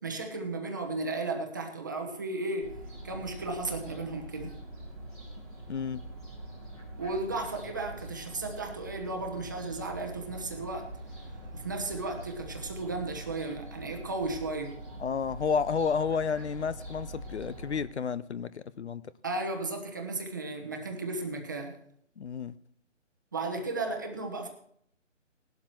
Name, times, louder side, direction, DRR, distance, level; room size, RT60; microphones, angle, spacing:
voice 1, 0.0-2.8 3.0-4.5 7.0-10.9 11.5-14.8 19.2-21.8 23.3-24.5, right 2 dB, 15° right, 0.9 m, -34 dB
Fowl, 2.6-17.8, right 1 dB, 5° left, 1.2 m, -44 dB
voice 2, 5.7-6.0 15.0-19.1 22.2-22.5, left 6 dB, 60° left, 0.6 m, -31 dB
18.0 x 12.0 x 3.1 m
hypercardioid pair, 170°, 38 cm